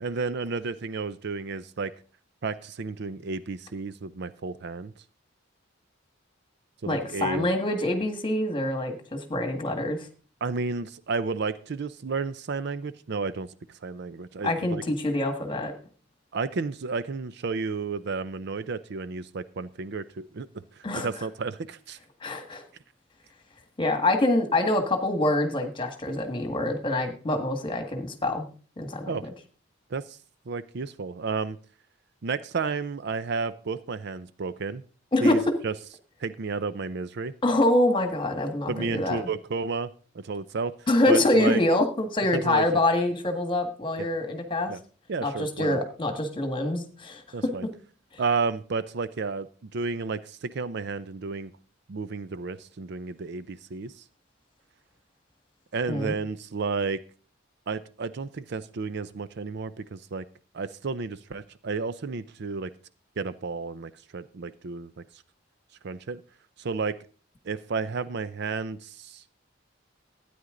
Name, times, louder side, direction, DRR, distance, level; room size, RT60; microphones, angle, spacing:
voice 1, 0.0-1.9 2.4-4.9 6.8-7.5 10.4-13.5 13.8-14.8 16.3-20.5 20.8-22.0 29.1-29.3 29.9-30.2 30.5-31.6 32.2-34.8 35.2-35.7 36.2-37.3 38.7-40.7 41.1-41.6 42.3-42.8 44.0-44.1 44.7-44.8 45.1-45.8 47.3-47.7 48.2-51.5 51.9-53.9 55.7-57.0 57.7-60.2 60.5-62.7 63.2-65.0 65.8-66.2 66.6-67.0 67.4-69.2, right 4 dB, 60° right, 15 dB, 0.5 m, -32 dB
voice 2, 6.9-10.1 14.4-15.7 20.8-21.1 22.2-22.6 23.8-28.5 28.8-29.1 35.1-35.4 37.4-39.2 40.9-44.7 45.2-47.2 55.9-56.2, left 1 dB, 25° left, 6 dB, 1.7 m, -25 dB
13.0 x 9.5 x 3.8 m, 0.39 s
head